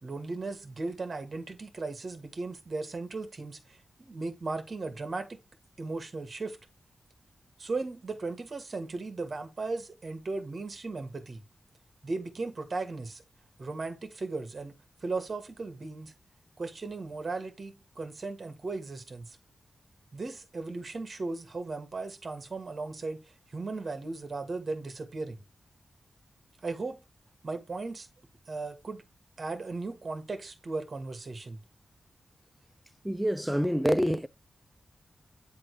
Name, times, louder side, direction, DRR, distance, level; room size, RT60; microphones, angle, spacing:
voice 1, 0.0-5.4 5.8-6.6 7.6-11.4 12.0-13.2 13.6-14.7 15.0-16.1 16.6-19.4 20.1-23.2 23.5-25.4 26.6-27.0 27.4-28.1 28.5-29.0 29.4-31.6, right 3 dB, 45° right, 1.6 m, -36 dB
voice 2, 33.0-34.3, equal, 5° right, 0.4 m, -26 dB
9.1 x 3.7 x 4.7 m
wide cardioid pair, 130°, 0 cm